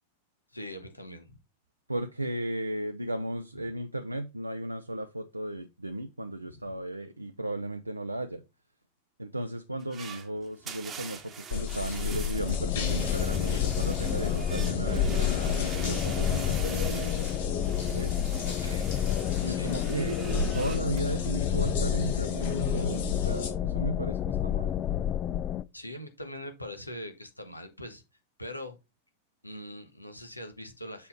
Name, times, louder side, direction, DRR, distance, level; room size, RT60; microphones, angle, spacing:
voice 1, 0.5-1.4 6.4-6.6 18.4-18.9 19.5-19.8 25.7-28.0 28.4-28.8 29.4-31.1, left 1 dB, 85° left, 1.3 m, -42 dB
voice 2, 1.9-8.4 9.2-17.1 17.9-18.2 19.4-20.2 20.5-24.7, right 1 dB, 85° right, 0.5 m, -35 dB
sound 1, 9.8-21.0, right 6 dB, 25° right, 1.1 m, -44 dB
sound 2, 11.5-23.5, left 5 dB, 55° left, 2.1 m, -33 dB
sound 3, 12.3-25.6, left 11 dB, 30° left, 0.4 m, -30 dB
7.0 x 4.4 x 4.3 m
figure-of-eight pair, 95°, 0 cm